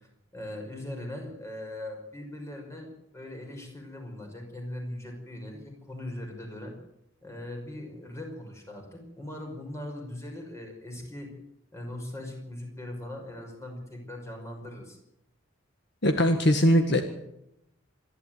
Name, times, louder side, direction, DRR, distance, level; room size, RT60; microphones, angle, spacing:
voice 1, 0.3-6.7 7.2-11.3 11.7-15.0, left 1 dB, 15° left, 2 dB, 5.6 m, -40 dB
voice 2, 16.0-17.0, equal, 55° left, 6 dB, 1.8 m, -21 dB
26.5 x 12.0 x 9.3 m, 0.83 s
head